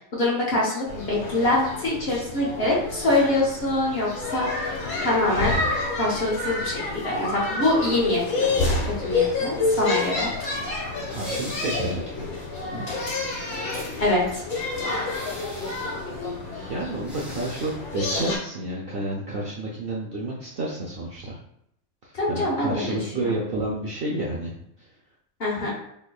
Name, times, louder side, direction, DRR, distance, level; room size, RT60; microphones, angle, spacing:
voice 1, 0.1-4.8 5.0-5.5 6.0-8.5 8.8-10.3 12.7-12.8 14.0-14.4 22.1-23.4 25.4-25.7, left 1 dB, 50° left, -4 dB, 1.1 m, -24 dB
sound 1, 0.9-18.4, left 3 dB, 70° left, 1.4 m, -29 dB
sound 2, 11.1-13.1 13.5-13.6 15.1-16.1 17.0-17.8 18.0-18.3, equal, ahead, 0.8 m, -42 dB
voice 2, 11.1-12.3 16.5-21.4 22.0-24.9, right 2 dB, 60° right, -3 dB, 0.6 m, -30 dB
3.6 x 3.1 x 2.3 m, 0.74 s
omnidirectional pair, 1.4 m